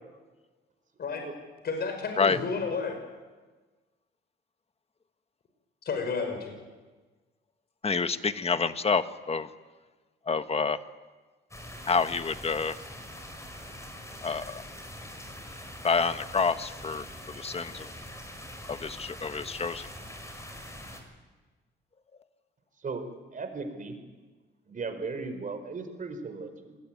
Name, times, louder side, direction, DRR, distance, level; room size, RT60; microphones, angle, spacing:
voice 1, 1.6-3.0 5.8-6.5, left 4 dB, 55° left, 4 dB, 5.8 m, -31 dB
voice 2, 7.8-9.5 10.3-10.8 11.9-12.7 14.2-14.6 15.8-17.9 18.7-19.9, left 5 dB, 30° left, 10 dB, 1.5 m, -28 dB
sound 1, 11.5-21.0, left 1 dB, 15° left, 6.3 m, -43 dB
voice 3, 23.3-23.9 24.7-26.8, right 4 dB, 40° right, 7 dB, 5.2 m, -36 dB
26.5 x 20.5 x 9.4 m, 1.3 s
cardioid pair, 90°, 20 cm